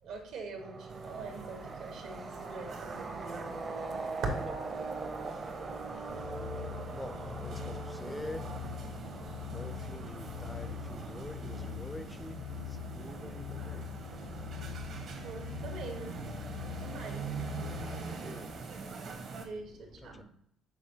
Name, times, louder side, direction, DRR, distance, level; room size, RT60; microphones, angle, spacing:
voice 1, 0.0-3.8 4.2-4.3 15.1-16.3 16.7-17.8 19.3-20.2, right 3 dB, 75° right, 1.6 m, -42 dB
sound 1, 0.6-19.4, right 3 dB, 35° right, 0.7 m, -44 dB
sound 2, 0.9-19.4, right 4 dB, 55° right, 1.2 m, -45 dB
sound 3, 6.1-18.2, left 8 dB, 80° left, 0.5 m, -43 dB
voice 2, 6.9-8.5 9.5-14.0 17.3-19.5 19.9-20.2, left 1 dB, 10° left, 0.4 m, -47 dB
6.2 x 4.4 x 3.8 m
cardioid pair, 105°, 0 cm